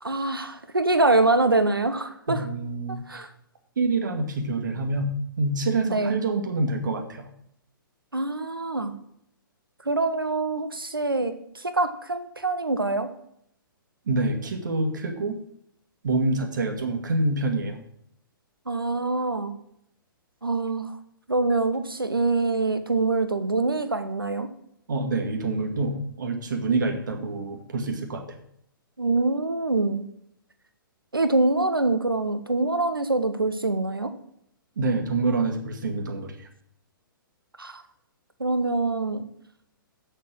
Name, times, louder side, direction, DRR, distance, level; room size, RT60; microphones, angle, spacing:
voice 1, 0.0-2.4 3.1-3.3 5.8-6.2 8.1-8.9 9.8-13.1 18.7-19.5 20.4-20.9 21.3-24.5 29.0-30.0 31.1-34.1 37.6-37.8 38.4-39.2, right 2 dB, 80° right, 10 dB, 1.2 m, -24 dB
voice 2, 2.3-3.2 3.8-5.1 5.4-7.3 14.1-15.4 16.0-17.8 24.9-28.2 34.8-36.5, right 2 dB, 55° right, 5 dB, 2.0 m, -26 dB
8.3 x 7.2 x 7.5 m, 0.72 s
figure-of-eight pair, 120°, 12 cm